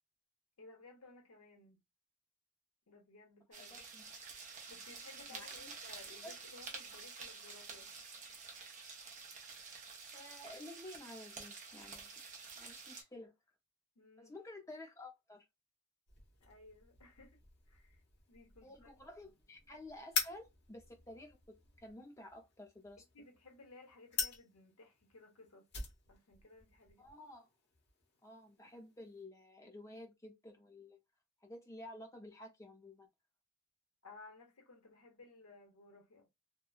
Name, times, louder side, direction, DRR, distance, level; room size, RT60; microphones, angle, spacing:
voice 1, 0.6-1.8 2.9-3.7 4.7-7.9 14.0-14.3 16.4-17.4 17.7-18.0 18.3-18.9 19.2-19.3 23.1-25.7 26.1-27.1 34.0-36.3, left 3 dB, 80° left, 1.0 m, -58 dB
voice 2, 3.5-4.1 5.3-5.7 6.2-6.4 10.1-12.1 12.6-13.3 14.2-15.4 18.6-23.0 27.0-27.5 28.2-31.0 31.4-33.1, left 1 dB, 15° left, 0.6 m, -52 dB
sound 1, 3.5-13.0, right 4 dB, 35° right, 0.7 m, -50 dB
sound 2, 16.1-29.2, left 5 dB, 50° left, 1.1 m, -46 dB
3.0 x 2.2 x 2.3 m
head